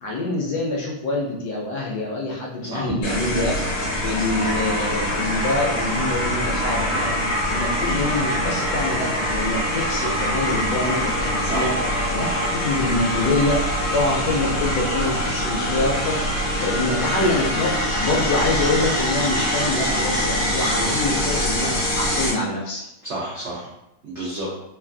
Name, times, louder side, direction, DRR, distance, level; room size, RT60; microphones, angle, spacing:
voice 1, 0.0-3.5 4.0-7.2 7.5-11.7 12.1-13.6 13.9-22.9, left 2 dB, 70° left, -2 dB, 1.0 m, -25 dB
voice 2, 2.6-3.0 11.4-12.0 23.0-23.7 24.0-24.5, right 2 dB, 75° right, -7 dB, 0.6 m, -30 dB
sound 1, 3.0-22.3, equal, 50° left, 1.2 m, -24 dB
3.1 x 2.3 x 2.4 m, 0.86 s
omnidirectional pair, 2.0 m